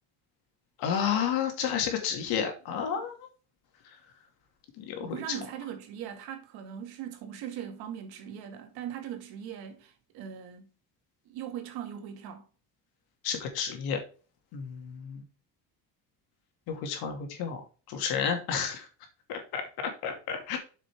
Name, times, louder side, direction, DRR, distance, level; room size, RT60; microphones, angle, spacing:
voice 1, 0.8-3.2 4.8-5.2 13.2-14.0 14.5-15.2 16.7-18.9 19.3-20.6, left 7 dB, 75° left, 2.5 m, -31 dB
voice 2, 5.0-10.7 11.3-12.5, right 9 dB, 80° right, 2.3 m, -40 dB
7.9 x 5.9 x 3.6 m
cardioid pair, 175°, 38 cm